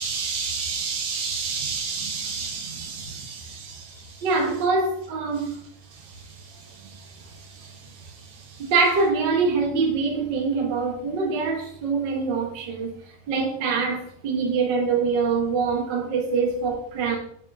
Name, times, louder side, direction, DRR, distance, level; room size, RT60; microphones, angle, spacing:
voice 1, 0.0-3.8, right 5 dB, 70° right, 2 dB, 2.5 m, -30 dB
voice 2, 4.2-5.6 8.6-12.9 13.3-17.2, right 4 dB, 50° right, 0 dB, 1.5 m, -24 dB
8.8 x 6.4 x 2.7 m, 0.64 s
omnidirectional pair, 3.6 m